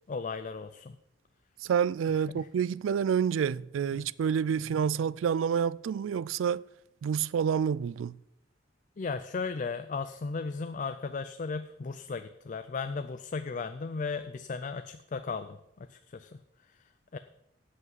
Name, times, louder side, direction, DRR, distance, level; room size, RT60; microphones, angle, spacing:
voice 1, 0.1-1.0 2.3-2.4 3.9-4.1 9.0-16.3 17.1-17.2, left 4 dB, 40° left, 0.4 m, -36 dB
voice 2, 1.6-6.6 7.0-8.2, right 7 dB, 90° right, 0.3 m, -28 dB
8.2 x 8.1 x 7.4 m
head